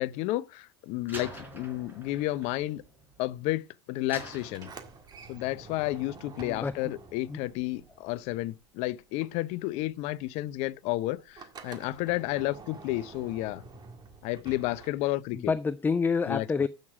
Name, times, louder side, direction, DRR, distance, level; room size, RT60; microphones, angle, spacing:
voice 1, 0.0-2.8 3.2-4.7 5.3-13.6 14.2-15.5 16.3-16.5, left 17 dB, 55° left, 0.6 m, -31 dB
Slam, 1.1-3.5 4.1-5.3, right 1 dB, 15° right, 3.9 m, -46 dB
Sliding door, 4.4-8.7 9.0-15.4, right 4 dB, 30° right, 1.8 m, -49 dB
voice 2, 6.4-6.9 7.3-7.4 15.3-16.7, left 5 dB, 15° left, 0.4 m, -28 dB
8.5 x 6.6 x 4.8 m
hypercardioid pair, 85°, 13 cm